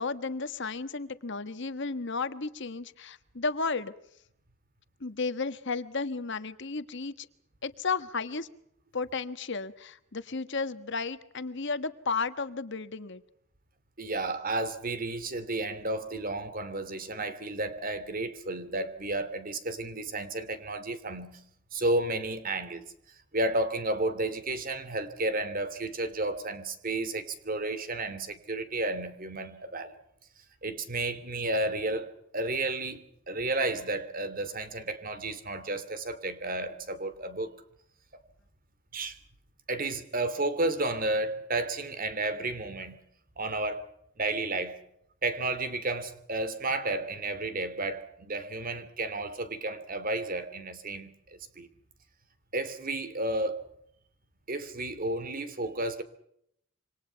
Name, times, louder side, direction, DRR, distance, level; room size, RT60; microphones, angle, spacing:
voice 1, 0.0-3.9 5.0-7.3 7.6-8.5 8.9-13.2, left 4 dB, 60° left, 1.4 m, -33 dB
voice 2, 14.0-21.4 21.7-22.8 23.3-29.9 30.6-37.5 38.9-39.2 39.7-43.0 43.4-43.9 44.2-44.8 45.2-51.7 52.5-53.6 54.5-56.0, right 2 dB, 40° right, 2.8 m, -32 dB
27.5 x 25.5 x 5.8 m
head